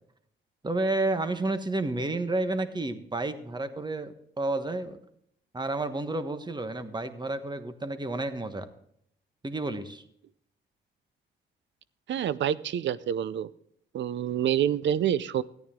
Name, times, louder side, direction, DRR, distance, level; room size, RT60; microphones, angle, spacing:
voice 1, 0.6-5.0 5.5-8.7 9.4-10.0, right 2 dB, 20° right, 10 dB, 1.3 m, -30 dB
voice 2, 12.1-13.5 13.9-15.4, right 10 dB, 65° right, 18 dB, 0.6 m, -27 dB
14.0 x 9.4 x 3.7 m, 0.71 s
supercardioid pair, 65°, 20 cm